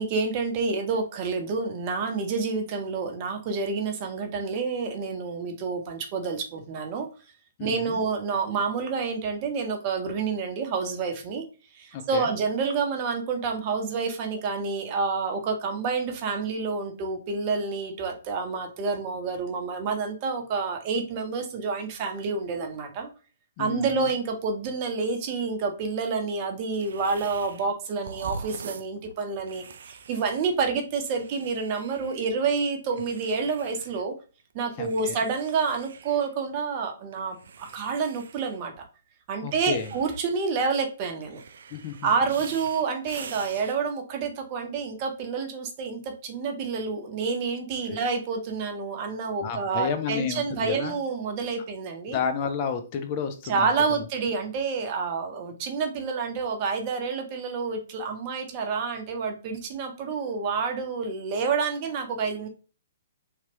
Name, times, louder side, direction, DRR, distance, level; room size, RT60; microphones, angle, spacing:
voice 1, 0.0-7.1 7.6-11.4 11.7-23.1 23.6-34.1 34.5-38.8 39.3-41.4 42.0-52.2 53.4-62.5, right 5 dB, 35° right, 4 dB, 0.7 m, -28 dB
voice 2, 7.6-8.0 11.9-12.3 23.6-24.1 34.8-35.2 39.4-39.9 41.7-42.1 47.9-48.0 49.4-51.0 52.1-54.0, left 7 dB, 35° left, 7 dB, 0.5 m, -31 dB
sound 1, 26.7-27.7 28.0-32.3 32.9-34.0 34.4-36.3 37.1-38.9 39.5-40.7 41.2-43.8, right 5 dB, 55° right, 0.3 m, -44 dB
3.3 x 2.9 x 2.9 m, 0.35 s
figure-of-eight pair, 120°, 0 cm